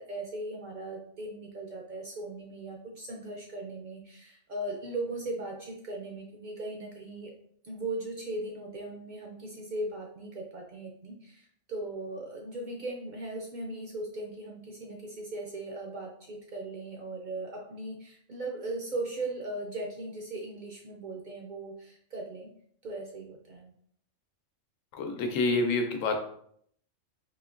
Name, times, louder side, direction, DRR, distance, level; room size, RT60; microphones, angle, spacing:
voice 1, 0.0-7.3 7.6-22.5 22.8-23.7, right 2 dB, 65° right, 0 dB, 0.4 m, -38 dB
voice 2, 24.9-26.1, left 3 dB, 85° left, 4 dB, 1.0 m, -27 dB
3.9 x 2.8 x 2.5 m, 0.66 s
omnidirectional pair, 1.3 m